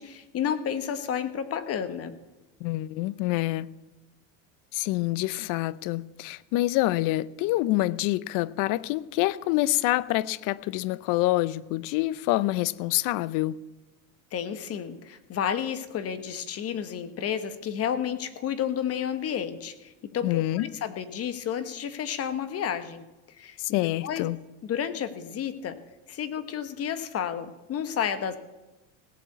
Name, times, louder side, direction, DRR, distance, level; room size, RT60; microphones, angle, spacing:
voice 1, 0.0-2.2 14.3-23.0 23.4-24.3 24.6-25.8 26.1-28.4, left 8 dB, 40° left, 1.3 m, -31 dB
voice 2, 2.6-3.7 4.7-13.5 20.2-20.7 23.6-24.4, left 17 dB, 60° left, 0.6 m, -26 dB
17.0 x 8.3 x 8.0 m
supercardioid pair, 120°, 37 cm